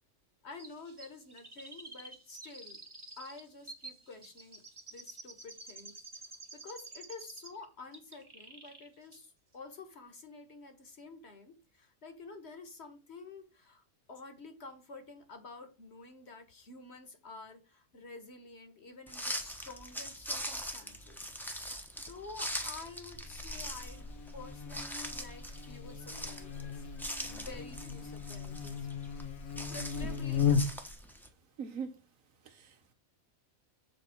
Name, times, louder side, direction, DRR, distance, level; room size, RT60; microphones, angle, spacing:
voice 1, 0.4-2.8 3.2-4.6 4.9-21.3 22.0-28.9 29.7-30.7, left 3 dB, 50° left, 1.6 m, -50 dB
Chirp tweet, 0.6-7.6 7.9-8.9 9.1-9.2, right 2 dB, 25° right, 1.0 m, -50 dB
sound 1, 19.1-31.3, equal, ahead, 0.9 m, -42 dB
Buzz, 23.1-30.9, left 6 dB, 75° left, 1.5 m, -36 dB
voice 2, 31.6-32.0 32.4-32.9, right 6 dB, 70° right, 1.5 m, -42 dB
7.2 x 4.1 x 5.9 m
omnidirectional pair, 1.5 m